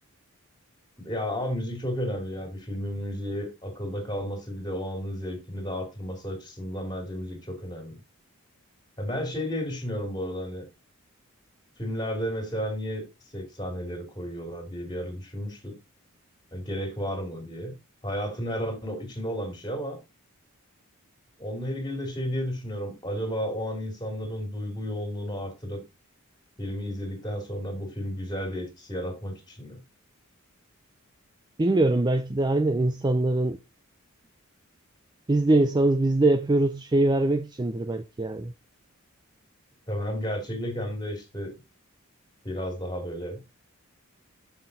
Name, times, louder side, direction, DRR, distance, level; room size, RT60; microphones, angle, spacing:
voice 1, 1.0-8.0 9.0-10.6 11.8-13.1 13.3-15.8 16.5-17.7 18.0-20.0 21.4-25.8 26.6-29.8 39.9-41.5 42.4-43.4, equal, 20° left, 2.7 m, -32 dB
voice 2, 31.6-33.6 35.3-38.5, right 2 dB, 20° right, 0.4 m, -23 dB
6.5 x 5.8 x 4.0 m
head